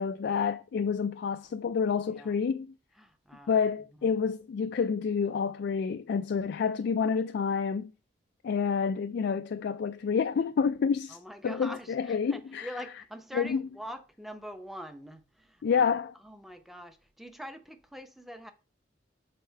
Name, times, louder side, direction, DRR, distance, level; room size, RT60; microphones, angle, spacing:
voice 1, 0.0-2.7 3.5-7.9 8.4-11.2 11.4-12.7 13.3-13.6 15.6-16.1, left 6 dB, 60° left, 0.3 m, -28 dB
voice 2, 2.1-2.4 3.0-3.6 4.0-4.2 11.1-15.9 16.2-18.5, equal, ahead, 0.6 m, -44 dB
6.5 x 4.1 x 4.5 m
head